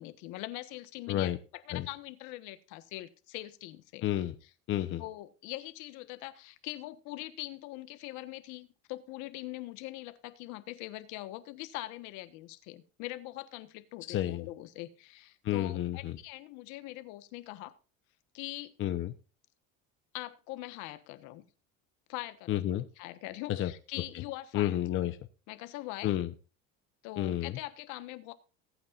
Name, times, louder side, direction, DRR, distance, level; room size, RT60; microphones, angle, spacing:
voice 1, 0.0-4.1 5.0-17.7 18.3-18.7 20.1-21.4 22.1-22.6 23.0-24.8 25.5-26.1 27.0-28.3, left 17 dB, 70° left, 11 dB, 1.3 m, -42 dB
voice 2, 1.1-1.4 1.7-1.9 4.0-4.3 4.7-5.0 14.1-14.5 15.4-16.2 18.8-19.1 22.5-22.9 23.5-23.7 24.5-25.2 26.0-26.3 27.2-27.6, left 13 dB, 40° left, 9 dB, 0.9 m, -30 dB
19.0 x 8.6 x 2.5 m, 0.34 s
cardioid pair, 140°, 31 cm